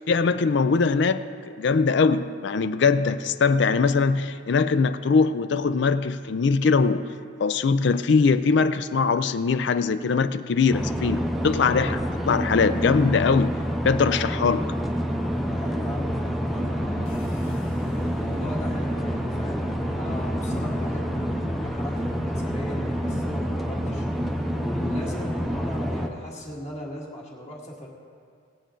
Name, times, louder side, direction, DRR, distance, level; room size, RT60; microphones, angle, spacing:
voice 1, 0.1-1.2 1.6-7.0 7.4-13.6 13.8-14.7, left 4 dB, 55° left, 0.4 m, -21 dB
sound 1, 10.7-26.1, equal, ahead, 0.6 m, -28 dB
voice 2, 15.3-17.6 17.9-24.1 24.5-27.9, left 1 dB, 35° left, 1.9 m, -38 dB
sound 2, 17.0-23.2, left 2 dB, 80° left, 1.3 m, -47 dB
18.5 x 8.2 x 3.8 m
head